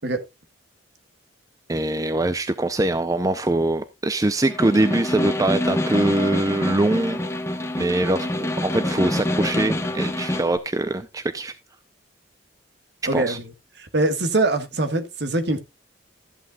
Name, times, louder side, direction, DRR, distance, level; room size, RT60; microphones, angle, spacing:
voice 1, 1.7-7.2 7.8-11.5 13.1-13.4, right 2 dB, 15° right, 0.5 m, -23 dB
Snare drum, 4.4-10.6, left 1 dB, 15° left, 1.1 m, -26 dB
voice 2, 13.1-13.5 13.8-15.6, right 2 dB, 60° right, 1.4 m, -23 dB
13.5 x 8.3 x 2.3 m
head